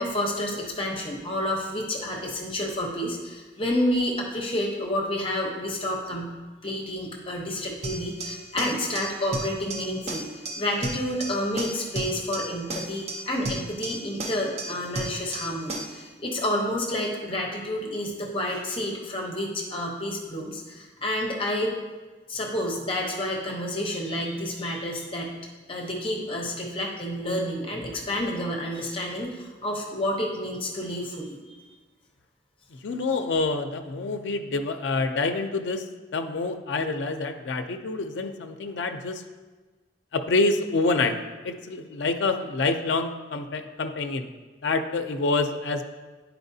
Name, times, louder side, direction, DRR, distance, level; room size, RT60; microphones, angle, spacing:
voice 1, 0.0-6.3 6.6-10.3 10.5-21.7 22.3-25.3 25.7-31.6, left 1 dB, 30° left, -1 dB, 0.8 m, -29 dB
sound 1, 7.8-16.0, right 1 dB, 40° right, 0.7 m, -35 dB
voice 2, 32.8-35.9 36.1-39.2 40.1-41.2 41.4-44.3 44.6-45.8, left 3 dB, 75° left, 6 dB, 0.5 m, -27 dB
9.5 x 4.4 x 2.7 m, 1.3 s
head